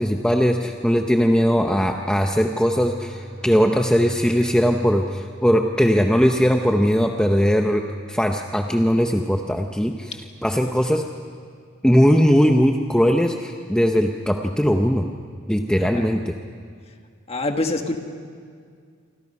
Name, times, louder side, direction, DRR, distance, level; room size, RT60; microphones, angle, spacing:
voice 1, 0.0-11.1 11.8-15.1 15.5-16.3, equal, 5° left, 3 dB, 0.7 m, -19 dB
Bowed string instrument, 1.5-6.7, equal, 20° right, 2.4 m, -39 dB
voice 2, 17.3-18.0, left 2 dB, 30° left, 5 dB, 1.5 m, -25 dB
27.5 x 25.0 x 5.5 m, 2.2 s
head